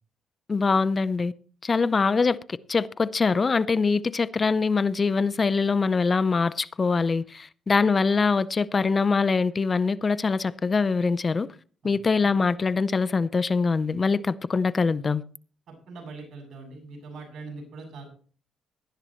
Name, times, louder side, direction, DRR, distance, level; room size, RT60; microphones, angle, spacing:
voice 1, 0.5-1.3 1.6-11.5 11.8-15.2, left 4 dB, 35° left, 0.5 m, -23 dB
voice 2, 15.9-18.0, right 3 dB, 65° right, 7.8 m, -41 dB
18.0 x 11.5 x 3.1 m
cardioid pair, 90°, 0 cm